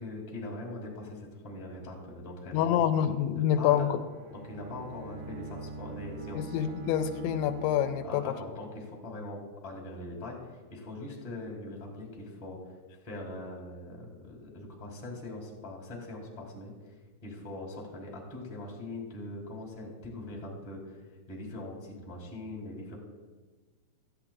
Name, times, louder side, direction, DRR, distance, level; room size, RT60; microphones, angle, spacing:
voice 1, 0.0-2.8 3.3-4.0 4.3-6.5 8.0-12.6 13.0-16.7 17.2-21.0 21.3-23.0, left 2 dB, 15° left, -1 dB, 1.5 m, -41 dB
voice 2, 2.5-3.9 6.3-8.2, left 10 dB, 85° left, 9 dB, 2.9 m, -27 dB
Bowed string instrument, 4.0-8.7, right 4 dB, 75° right, 1.9 m, -44 dB
16.5 x 13.5 x 2.4 m, 1.3 s
omnidirectional pair, 5.2 m